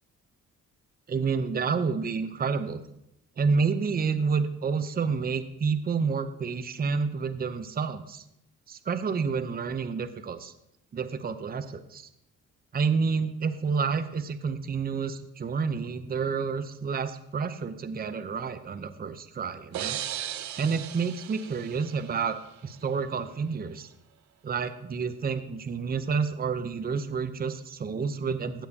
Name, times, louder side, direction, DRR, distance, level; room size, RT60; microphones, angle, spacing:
voice 1, 1.1-2.8 3.4-8.2 8.7-10.5 10.9-12.0 12.7-20.0 20.6-22.4 22.6-23.9 24.4-28.7, right 5 dB, 30° right, 10 dB, 0.7 m, -29 dB
sound 1, 19.7-22.5, right 11 dB, 65° right, 0.7 m, -37 dB
16.0 x 7.3 x 2.8 m, 0.81 s
cardioid pair, 90°, 30 cm